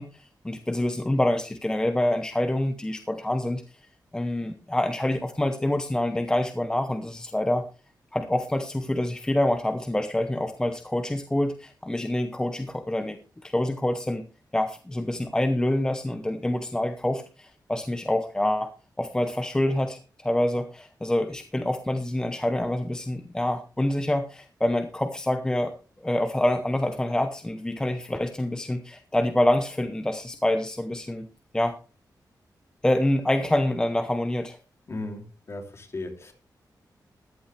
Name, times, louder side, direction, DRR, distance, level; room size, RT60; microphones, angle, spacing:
voice 1, 0.0-3.6 4.1-7.7 8.1-14.2 14.5-18.7 19.0-25.7 26.0-31.3 31.5-31.8 32.8-34.6, left 1 dB, 10° left, 7 dB, 0.9 m, -26 dB
voice 2, 34.9-36.3, left 2 dB, 40° left, 3 dB, 3.0 m, -36 dB
14.5 x 11.0 x 3.3 m, 0.34 s
wide cardioid pair, 160°, 7 cm